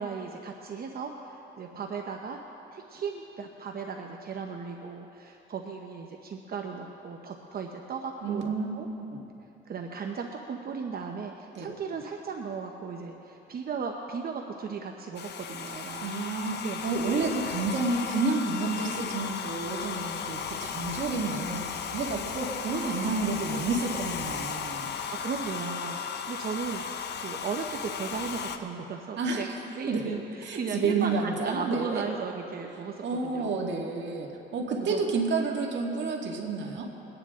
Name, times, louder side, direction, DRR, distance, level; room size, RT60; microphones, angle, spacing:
voice 1, 0.0-2.4 2.7-8.9 9.7-16.2 16.6-16.8 20.9-21.0 22.7-24.0 25.0-26.8 27.2-33.6 34.8-35.0, right 5 dB, 50° right, 2 dB, 0.9 m, -36 dB
voice 2, 8.2-9.2 11.6-11.7 16.0-21.6 21.9-24.9 29.2-29.6 29.9-30.0 30.4-32.1 33.0-36.9, right 3 dB, 65° right, 0 dB, 2.0 m, -30 dB
Domestic sounds home sounds, 15.2-28.6, left 7 dB, 60° left, 0.9 m, -35 dB
22.5 x 9.8 x 3.7 m, 3.0 s
cardioid pair, 90°, 20 cm